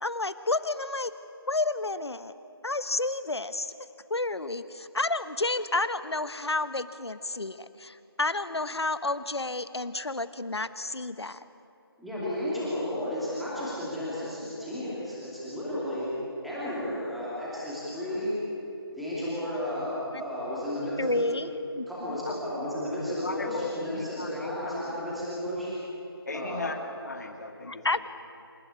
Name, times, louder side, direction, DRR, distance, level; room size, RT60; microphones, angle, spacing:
voice 1, 0.0-1.1 1.5-2.3 2.6-3.7 4.1-11.4 20.1-20.2 21.0-22.2 27.7-28.1, left 2 dB, 90° left, 13 dB, 1.3 m, -30 dB
voice 2, 12.0-16.1 16.4-18.3 19.0-21.2 21.9-25.7 26.3-26.6, left 1 dB, ahead, -10 dB, 2.7 m, -33 dB
voice 3, 23.2-25.0 26.3-27.8, left 2 dB, 40° left, 6 dB, 2.1 m, -37 dB
27.5 x 13.5 x 9.6 m, 2.8 s
figure-of-eight pair, 170°, 13 cm